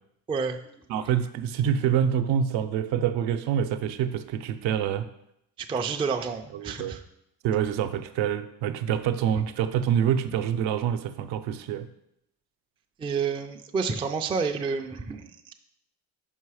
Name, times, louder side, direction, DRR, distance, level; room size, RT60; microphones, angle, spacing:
voice 1, 0.3-0.9 5.6-7.0 13.0-15.5, right 5 dB, 15° right, 4 dB, 0.3 m, -30 dB
voice 2, 0.9-5.1 6.5-7.0 7.4-11.9, right 9 dB, 70° right, 9 dB, 0.7 m, -26 dB
5.7 x 5.5 x 4.8 m, 0.78 s
cardioid pair, 110°, 47 cm